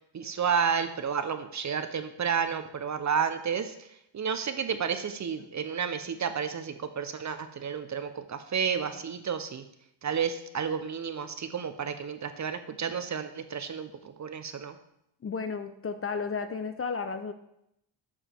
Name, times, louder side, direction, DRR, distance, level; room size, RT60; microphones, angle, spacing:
voice 1, 0.1-3.7 4.1-9.6 10.0-14.8, right 7 dB, 35° right, 10 dB, 0.6 m, -31 dB
voice 2, 15.2-17.3, left 5 dB, 30° left, 9 dB, 0.5 m, -33 dB
7.1 x 4.9 x 4.4 m, 0.78 s
cardioid pair, 75°, 47 cm